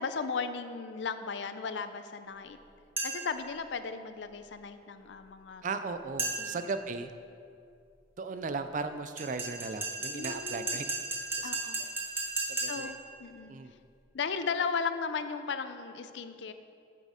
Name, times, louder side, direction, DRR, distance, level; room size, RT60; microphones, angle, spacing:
voice 1, 0.0-2.6 3.0-5.6 6.4-6.5 10.1-10.8 11.4-11.8 12.7-13.5 14.1-16.5, left 5 dB, 75° left, 10 dB, 0.5 m, -36 dB
sound 1, 3.0-3.4 6.2-6.7 9.2-13.0, right 2 dB, 10° right, 1.2 m, -35 dB
voice 2, 5.6-7.1 8.2-10.8 11.3-11.9 12.5-12.9 13.5-13.7, right 4 dB, 45° right, 10 dB, 0.4 m, -37 dB
8.3 x 6.5 x 5.0 m, 2.4 s
head